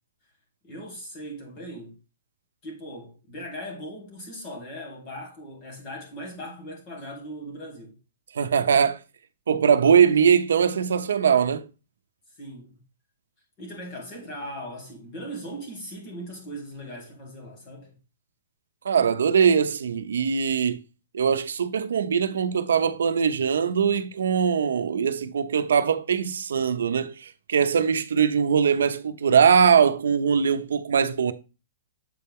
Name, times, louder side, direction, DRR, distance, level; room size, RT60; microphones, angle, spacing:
voice 1, 0.6-2.0 2.6-8.0 10.0-10.1 12.4-12.8 13.6-17.9, equal, 20° left, 2.4 m, -39 dB
voice 2, 8.3-9.0 9.5-11.7 18.8-20.8 21.1-31.3, right 7 dB, 85° right, 0.8 m, -21 dB
7.8 x 4.4 x 3.6 m
hypercardioid pair, 180°, 0 cm